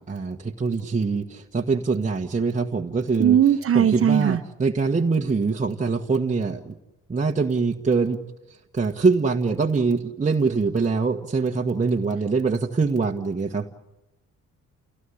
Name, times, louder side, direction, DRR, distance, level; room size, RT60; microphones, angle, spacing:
voice 1, 0.0-3.4 3.7-6.8 7.1-8.2 8.5-13.7, right 4 dB, 25° right, 1 dB, 1.5 m, -24 dB
voice 2, 3.2-4.4, right 9 dB, 50° right, 9 dB, 1.1 m, -18 dB
29.5 x 17.0 x 10.0 m, 0.99 s
cardioid pair, 90°, 30 cm